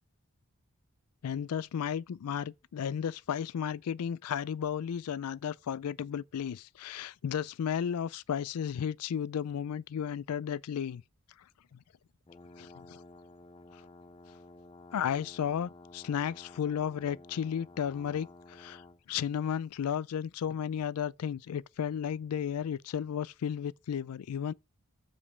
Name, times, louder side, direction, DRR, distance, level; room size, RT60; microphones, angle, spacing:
voice 1, 1.2-11.0 11.7-11.8 12.6-13.0 14.9-24.5, left 8 dB, 85° left, 0.4 m, -34 dB
sound 1, 12.3-19.0, left 2 dB, 25° left, 0.4 m, -53 dB
7.4 x 5.1 x 6.6 m
head